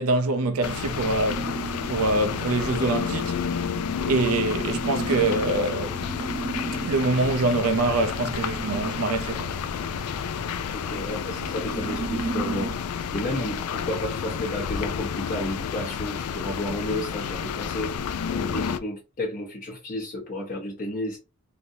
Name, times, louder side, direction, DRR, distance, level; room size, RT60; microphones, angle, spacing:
voice 1, 0.0-1.5 1.9-3.4 4.0-6.0 6.8-9.6, right 2 dB, 70° right, 0.5 m, -25 dB
sound 1, 0.6-18.8, left 7 dB, 75° left, 0.4 m, -30 dB
sound 2, 1.3-12.7, right 4 dB, 35° right, 0.8 m, -36 dB
voice 2, 10.7-12.7 13.1-17.9 18.3-21.2, left 1 dB, 40° left, 0.8 m, -32 dB
3.3 x 2.6 x 2.6 m
head